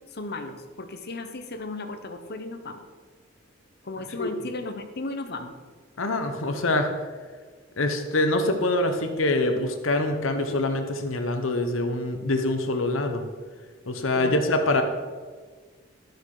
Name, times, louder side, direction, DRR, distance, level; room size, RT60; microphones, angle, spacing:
voice 1, 0.1-2.8 3.8-5.5 14.1-14.4, left 2 dB, 55° left, 7 dB, 1.0 m, -35 dB
voice 2, 6.0-6.9 7.8-13.2 13.9-14.8, left 2 dB, 80° left, 6 dB, 1.1 m, -25 dB
12.5 x 6.4 x 4.9 m, 1.5 s
head